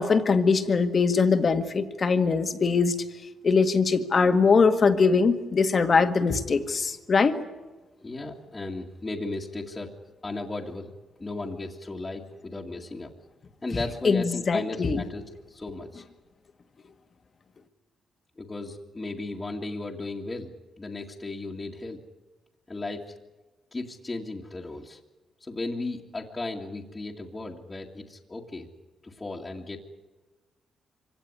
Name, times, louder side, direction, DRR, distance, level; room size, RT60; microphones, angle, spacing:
voice 1, 0.0-3.0 3.4-7.4 14.0-15.0, left 4 dB, 40° left, 8 dB, 1.8 m, -22 dB
voice 2, 8.0-9.9 10.2-10.9 11.2-13.1 13.6-15.2 15.5-16.0 18.4-22.0 22.7-23.0 23.7-25.0 25.4-28.7 29.0-29.8, left 2 dB, 20° left, -2 dB, 2.1 m, -35 dB
25.0 x 17.5 x 9.8 m, 1.2 s
cardioid pair, 110°, 0 cm